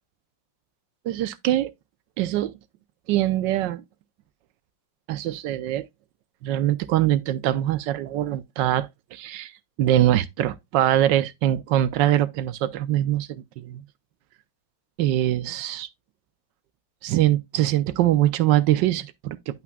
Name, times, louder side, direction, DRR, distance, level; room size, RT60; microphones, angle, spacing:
voice 1, 1.0-1.7 2.2-2.5 3.1-3.8 5.1-5.9 6.4-9.5 9.8-13.8 15.0-15.9 17.0-19.6, right 13 dB, 90° right, 1.3 m, -23 dB
10.5 x 5.8 x 2.2 m
omnidirectional pair, 1.9 m